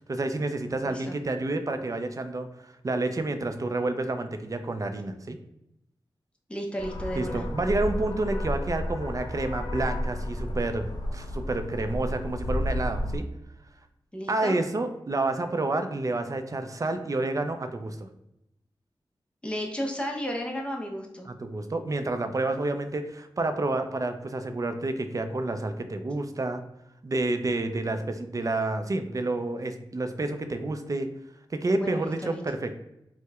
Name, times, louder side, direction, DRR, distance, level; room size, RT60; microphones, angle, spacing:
voice 1, 0.1-2.5 2.8-5.4 7.2-13.2 14.3-18.1 21.3-26.6 27.0-31.1 31.5-32.8, right 2 dB, 40° right, 7 dB, 0.4 m, -29 dB
voice 2, 0.8-1.2 6.5-7.4 14.1-14.5 19.4-21.3 31.8-32.4, equal, 10° left, 1 dB, 0.7 m, -33 dB
sound 1, 6.8-13.2, left 1 dB, 50° left, 0.5 m, -32 dB
4.3 x 2.1 x 2.3 m, 0.86 s
cardioid pair, 50°, 9 cm